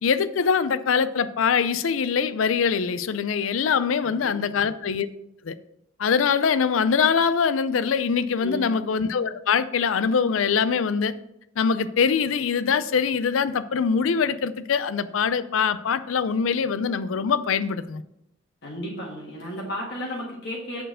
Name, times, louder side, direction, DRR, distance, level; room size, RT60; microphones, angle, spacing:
voice 1, 0.0-5.1 5.4-5.5 6.0-11.1 11.6-18.0, left 6 dB, 80° left, 15 dB, 0.5 m, -23 dB
voice 2, 4.0-4.7 8.4-8.8 18.6-20.8, equal, 60° left, -2 dB, 1.6 m, -34 dB
6.6 x 4.5 x 6.2 m, 0.81 s
head